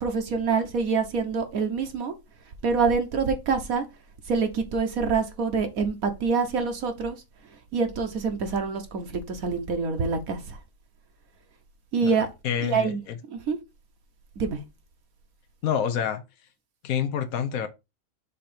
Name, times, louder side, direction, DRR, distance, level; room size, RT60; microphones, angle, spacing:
voice 1, 0.0-2.1 2.6-3.8 4.3-7.2 7.7-10.6 11.9-12.3 12.6-13.0 13.3-13.6 14.4-14.6, right 5 dB, 90° right, 1.6 m, -26 dB
voice 2, 12.0-13.2 15.6-16.2 16.8-17.7, left 8 dB, 90° left, 1.3 m, -28 dB
6.6 x 2.9 x 5.0 m
omnidirectional pair, 1.4 m